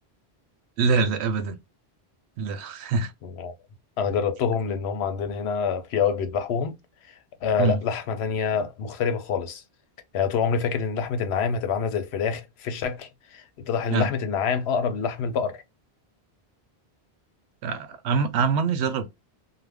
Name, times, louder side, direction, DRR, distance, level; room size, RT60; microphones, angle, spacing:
voice 1, 0.8-1.6 2.4-3.1 7.6-7.8 13.9-14.1 17.6-19.1, right 5 dB, 90° right, 0.9 m, -24 dB
voice 2, 3.2-3.5 4.0-6.8 7.1-9.6 10.1-15.6, left 6 dB, 80° left, 0.8 m, -26 dB
2.5 x 2.1 x 3.3 m
omnidirectional pair, 1.1 m